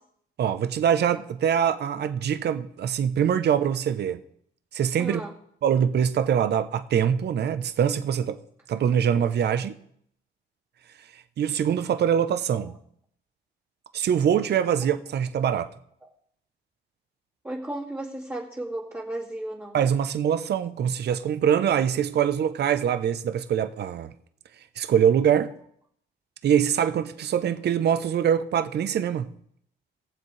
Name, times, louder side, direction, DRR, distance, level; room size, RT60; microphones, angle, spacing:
voice 1, 0.4-4.2 4.7-5.3 5.6-8.4 8.7-9.8 11.4-12.8 13.9-15.7 19.7-24.1 24.8-25.5 26.4-29.3, right 8 dB, 55° right, 0.8 m, -23 dB
voice 2, 5.0-5.3 17.4-19.8, right 1 dB, 10° right, 2.3 m, -34 dB
21.5 x 7.4 x 3.2 m
cardioid pair, 90°, 20 cm